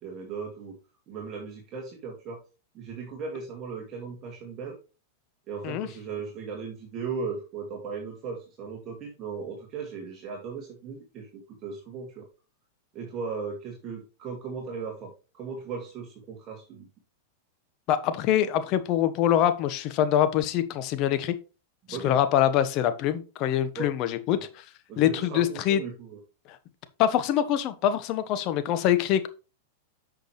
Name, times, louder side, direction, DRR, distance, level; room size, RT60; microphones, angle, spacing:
voice 1, 0.0-0.8 1.1-2.4 2.7-4.8 5.5-11.3 11.6-12.3 12.9-16.9 21.9-22.2 23.7-23.9 24.3-24.4 24.9-26.2, right 5 dB, 35° right, 2.2 m, -37 dB
voice 2, 17.9-21.3 21.9-24.4 25.0-25.8 27.0-29.3, left 11 dB, 45° left, 1.1 m, -24 dB
8.3 x 6.2 x 3.2 m
hypercardioid pair, 125°, 0 cm